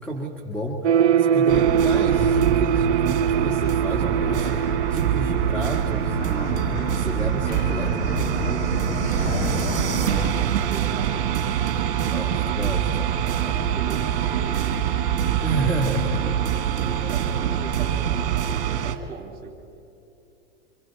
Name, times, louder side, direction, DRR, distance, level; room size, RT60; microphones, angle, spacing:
voice 1, 0.0-8.7 12.0-13.0 15.4-16.2, equal, 5° left, 0 dB, 1.6 m, -30 dB
sound 1, 0.8-6.7, right 8 dB, 70° right, 0.6 m, -23 dB
sound 2, 1.5-19.0, right 9 dB, 50° right, 1.4 m, -24 dB
sound 3, 2.8-10.3, left 3 dB, 70° left, 2.7 m, -33 dB
voice 2, 9.2-9.9 10.1-11.2 13.4-14.8 16.7-19.6, right 4 dB, 25° right, 3 dB, 3.1 m, -39 dB
27.0 x 26.0 x 4.6 m, 2.7 s
figure-of-eight pair, 90°, 35 cm